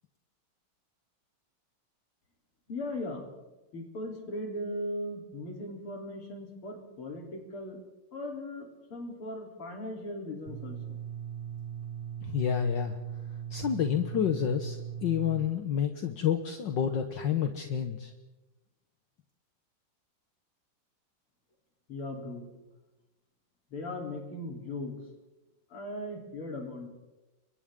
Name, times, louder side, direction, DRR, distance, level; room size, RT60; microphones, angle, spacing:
voice 1, 2.7-3.3 3.7-7.8 8.1-11.0 21.9-22.5 23.7-25.0 25.7-26.9, left 1 dB, 80° left, 0 dB, 4.5 m, -38 dB
sound 1, 10.5-15.5, right 9 dB, 40° right, 2.7 m, -39 dB
voice 2, 12.3-13.0 13.5-14.8 15.0-18.1, left 8 dB, 60° left, 6 dB, 1.7 m, -29 dB
30.0 x 24.0 x 3.8 m, 1.1 s
omnidirectional pair, 2.3 m